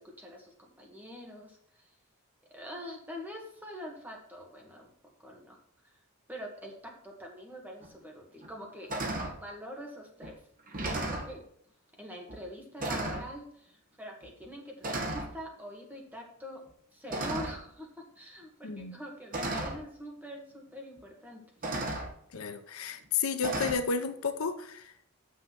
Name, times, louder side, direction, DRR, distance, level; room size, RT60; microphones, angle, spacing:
voice 1, 0.0-1.9 2.5-4.9 5.2-5.6 6.3-8.9 9.3-10.4 10.8-11.4 12.0-16.6 16.9-17.9 18.2-21.4, equal, 10° right, 0 dB, 1.9 m, -44 dB
sound 1, 7.8-7.9 8.4-8.6 8.9-9.4 10.2-10.3 10.7-11.3 12.3-12.5 12.8-13.3 14.2-14.5 14.8-15.3 17.1-17.7 18.8-18.9 19.3-19.8 21.0-21.1 21.6-22.1 23.4-23.7, right 2 dB, 40° right, 1.5 m, -34 dB
voice 2, 18.6-18.9 22.3-24.9, left 5 dB, 65° left, 10 dB, 0.7 m, -32 dB
6.7 x 6.4 x 6.0 m, 0.65 s
head